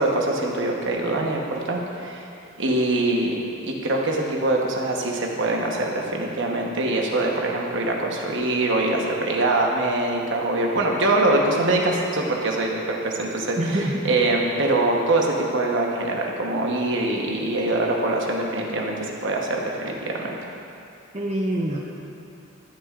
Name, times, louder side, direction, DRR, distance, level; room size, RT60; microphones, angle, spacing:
voice 1, 0.0-2.2 2.6-3.3 3.6-20.3, right 2 dB, 65° right, 0 dB, 1.1 m, -23 dB
voice 2, 13.6-14.2 21.1-21.8, right 1 dB, 35° right, -2 dB, 0.6 m, -25 dB
13.5 x 8.3 x 2.5 m, 2.6 s
head